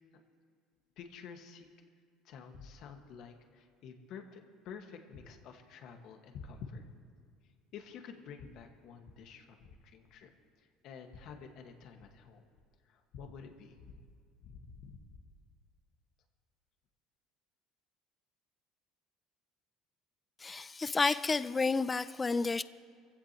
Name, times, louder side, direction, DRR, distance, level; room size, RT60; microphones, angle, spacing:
voice 1, 1.0-1.7 2.2-6.8 7.7-10.3 10.6-12.4 12.8-14.0 14.4-15.2, left 6 dB, 60° left, 1.6 m, -49 dB
voice 2, 20.4-22.6, left 4 dB, 20° left, 0.4 m, -30 dB
24.5 x 16.0 x 3.0 m
supercardioid pair, 115°, 0 cm